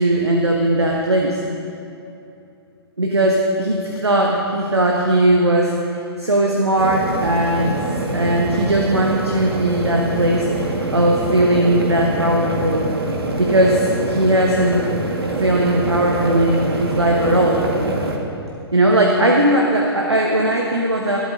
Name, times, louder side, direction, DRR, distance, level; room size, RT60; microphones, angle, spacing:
voice 1, 0.0-1.4 3.0-7.8 8.1-12.9 13.4-14.9 15.4-17.7 18.7-21.2, right 1 dB, 80° right, 0 dB, 1.2 m, -18 dB
sound 1, 6.8-18.2, right 2 dB, 65° right, 1.8 m, -25 dB
20.0 x 8.5 x 3.9 m, 2.7 s
figure-of-eight pair, 120°, 14 cm